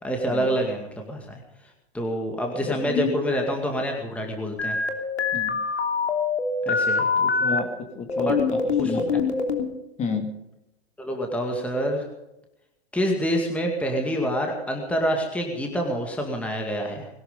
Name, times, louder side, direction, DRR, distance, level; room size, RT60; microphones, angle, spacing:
voice 1, 0.0-1.4 1.9-4.8 6.7-7.3 8.3-8.4 8.8-9.1 11.0-12.1 12.9-17.1, equal, 5° left, 1 dB, 2.2 m, -27 dB
voice 2, 2.5-3.2 5.3-5.6 7.2-9.0 10.0-10.3, left 4 dB, 20° left, 5 dB, 2.4 m, -30 dB
sound 1, 4.6-7.6 8.1-9.7, left 4 dB, 85° left, 3.2 m, -24 dB
21.0 x 12.5 x 5.4 m, 0.91 s
hypercardioid pair, 125°, 32 cm